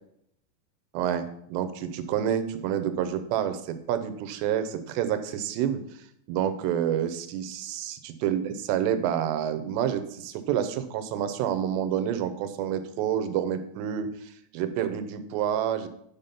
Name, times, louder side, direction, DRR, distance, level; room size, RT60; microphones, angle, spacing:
voice 1, 0.9-5.8 6.3-15.9, right 9 dB, 90° right, 10 dB, 3.0 m, -28 dB
10.5 x 5.3 x 5.7 m, 0.72 s
omnidirectional pair, 4.8 m